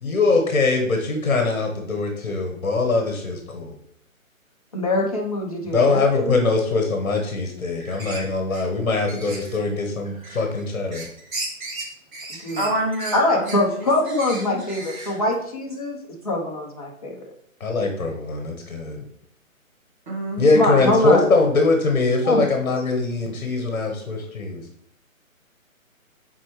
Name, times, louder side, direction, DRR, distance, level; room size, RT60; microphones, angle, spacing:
voice 1, 0.0-3.7 5.7-11.0 17.6-19.0 20.4-24.6, left 3 dB, 60° left, 3 dB, 1.3 m, -22 dB
voice 2, 4.7-6.4 12.3-12.7 13.1-16.0 16.2-17.1 20.5-21.3 22.2-22.5, left 2 dB, 25° left, -2 dB, 1.0 m, -23 dB
sound 1, 7.7-8.2 8.5-8.6 9.1-9.6 10.0-10.6 10.9-15.3, right 2 dB, 75° right, 2.5 m, -36 dB
voice 3, 12.6-13.6 14.0-14.1 14.4-14.6 20.1-20.7, right 1 dB, 35° right, -2 dB, 1.7 m, -27 dB
7.5 x 4.4 x 3.2 m, 0.67 s
hypercardioid pair, 175°, 41 cm